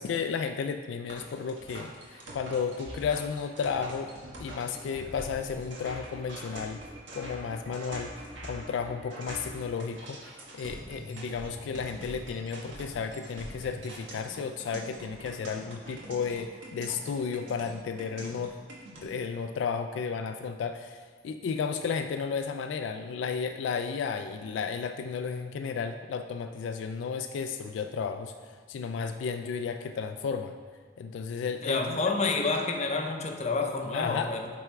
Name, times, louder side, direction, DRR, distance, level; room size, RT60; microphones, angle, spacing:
voice 1, 0.0-4.1 4.4-6.8 7.1-8.1 8.4-18.6 19.0-30.6 31.0-32.0 33.9-34.3, left 6 dB, 80° left, 7 dB, 0.3 m, -33 dB
sound 1, 1.1-19.0, right 1 dB, 80° right, 1.3 m, -44 dB
voice 2, 31.6-34.5, left 3 dB, 35° left, 3 dB, 0.6 m, -29 dB
7.7 x 3.5 x 4.6 m, 1.5 s
head